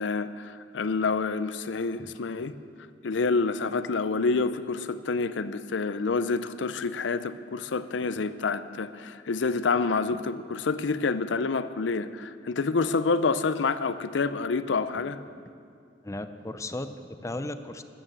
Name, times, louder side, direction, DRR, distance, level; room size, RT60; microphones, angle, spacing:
voice 1, 0.0-2.6 3.0-15.2, left 4 dB, 80° left, 0.5 m, -28 dB
voice 2, 16.0-17.8, left 2 dB, 15° left, 0.5 m, -36 dB
13.0 x 9.0 x 7.3 m
head